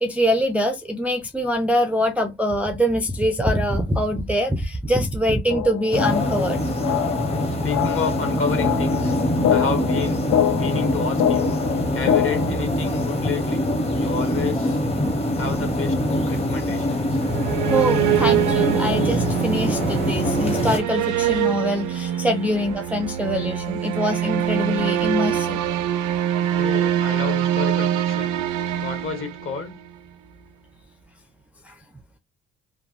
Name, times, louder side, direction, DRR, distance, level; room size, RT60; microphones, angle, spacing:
voice 1, 0.0-6.6 17.7-25.6 31.7-31.8, equal, 5° right, 0.4 m, -23 dB
sound 1, 5.5-12.5, left 10 dB, 70° left, 0.5 m, -25 dB
sound 2, 5.9-20.8, left 1 dB, 20° left, 0.8 m, -24 dB
voice 2, 7.6-9.1 9.5-10.2 10.6-11.6 11.9-13.7 14.0-14.8 15.3-17.2 26.6-28.3 28.8-29.8, left 6 dB, 45° left, 1.2 m, -30 dB
sound 3, 17.1-29.9, right 10 dB, 85° right, 0.5 m, -24 dB
3.3 x 2.1 x 2.4 m
cardioid pair, 90°, 30 cm